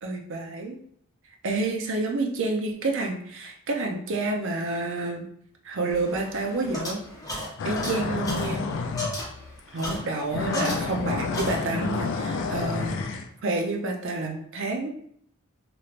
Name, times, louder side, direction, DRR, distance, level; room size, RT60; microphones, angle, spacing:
voice 1, 0.0-0.8 1.4-5.2 5.6-7.0 7.3-8.6 9.7-13.0 13.4-14.9, right 2 dB, 60° right, 2 dB, 0.6 m, -29 dB
sound 1, 5.9-11.1 11.3-12.0, left 1 dB, 15° left, 1.0 m, -35 dB
sound 2, 7.6-9.2 9.7-10.0 10.3-13.3, left 4 dB, 60° left, 0.4 m, -29 dB
3.1 x 3.0 x 2.4 m, 0.67 s
head